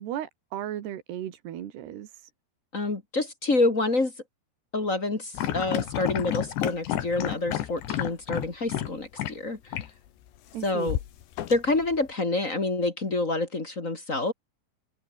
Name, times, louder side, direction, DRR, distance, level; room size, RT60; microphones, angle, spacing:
voice 1, 0.0-2.3 10.5-11.0, right 11 dB, 75° right, 4.0 m, -36 dB
voice 2, 2.7-4.1 4.7-9.6 10.6-11.0 11.5-14.3, left 2 dB, 25° left, 1.9 m, -27 dB
sound 1, 5.3-8.9 9.2-9.3 9.7-9.9 10.9-12.0, left 12 dB, 90° left, 4.1 m, -30 dB
omnidirectional pair, 4.9 m